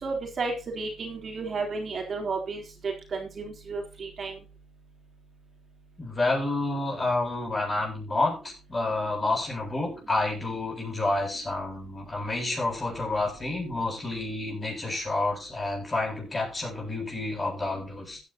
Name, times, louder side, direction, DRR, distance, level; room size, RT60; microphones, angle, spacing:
voice 1, 0.0-4.4, right 4 dB, 50° right, 2 dB, 3.8 m, -33 dB
voice 2, 6.0-18.2, left 2 dB, 25° left, 1 dB, 7.7 m, -29 dB
15.5 x 10.0 x 3.0 m, 0.32 s
cardioid pair, 90°, 0 cm